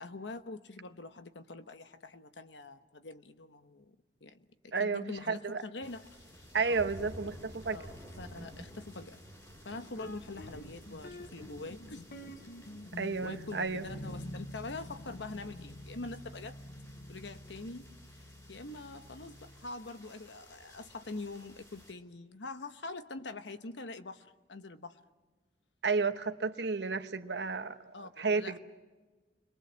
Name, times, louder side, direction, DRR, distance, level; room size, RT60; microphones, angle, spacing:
voice 1, 0.0-4.0 4.2-4.4 4.6-6.9 7.7-9.2 9.6-12.0 13.2-16.6 17.1-17.9 18.5-25.0 27.9-28.6, left 3 dB, 90° left, 1.2 m, -44 dB
voice 2, 4.7-5.6 6.5-7.8 13.0-13.9 25.8-28.6, right 4 dB, 70° right, 1.1 m, -32 dB
sound 1, 5.8-21.9, equal, 20° left, 4.4 m, -53 dB
sound 2, 10.0-19.7, left 1 dB, 60° left, 1.0 m, -48 dB
29.0 x 22.5 x 7.5 m
head